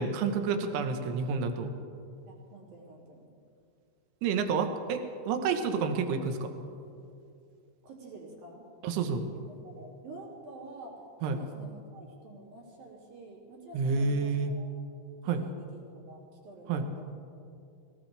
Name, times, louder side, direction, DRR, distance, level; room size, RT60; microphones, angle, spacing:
voice 1, 0.0-1.7 4.2-6.5 8.8-9.3 11.2-11.4 13.7-14.5 15.2-15.4 16.7-16.9, right 5 dB, 70° right, 6 dB, 2.8 m, -29 dB
voice 2, 2.3-3.3 4.5-4.8 7.8-8.7 9.3-14.7 15.2-17.1, right 2 dB, 50° right, -3 dB, 4.0 m, -49 dB
24.0 x 17.5 x 3.4 m, 2.5 s
omnidirectional pair, 6.0 m